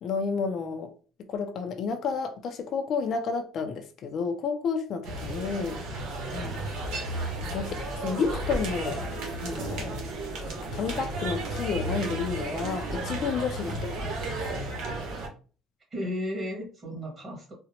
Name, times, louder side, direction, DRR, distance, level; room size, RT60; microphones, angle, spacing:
voice 1, 0.0-0.9 1.3-5.8 6.3-6.6 7.5-9.0 9.4-10.0 10.7-14.0 14.5-14.6, left 5 dB, 45° left, 0.4 m, -31 dB
sound 1, 5.0-15.3, right 2 dB, 75° right, 1.1 m, -33 dB
voice 2, 13.7-14.2 15.9-17.5, left 1 dB, 25° right, 1.6 m, -35 dB
3.8 x 2.1 x 2.8 m
cardioid pair, 150°, 0 cm